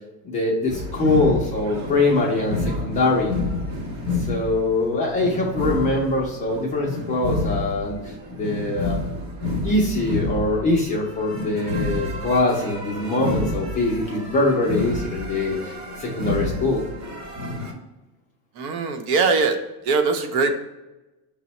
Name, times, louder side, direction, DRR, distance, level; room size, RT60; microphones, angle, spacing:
voice 1, 0.3-3.3 4.3-9.0 9.6-15.7 16.0-16.8, left 2 dB, 20° left, -2 dB, 0.3 m, -23 dB
sound 1, 0.7-17.7, left 2 dB, 55° right, 1.0 m, -29 dB
voice 2, 18.6-19.6 19.8-20.5, right 4 dB, 85° right, 5 dB, 0.8 m, -21 dB
5.7 x 2.0 x 4.1 m, 1.0 s
cardioid pair, 170°, 42 cm